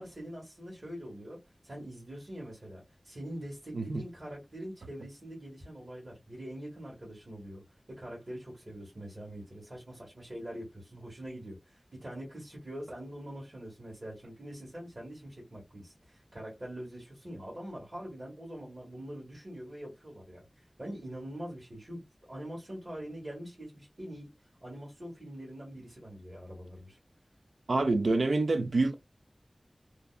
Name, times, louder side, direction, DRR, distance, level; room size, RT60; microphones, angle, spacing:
voice 1, 0.0-20.4 20.8-24.3 24.6-27.0, equal, 50° right, 1.4 m, -44 dB
voice 2, 27.7-29.0, right 3 dB, 85° right, 0.4 m, -27 dB
2.7 x 2.1 x 2.3 m
wide cardioid pair, 55°, 0 cm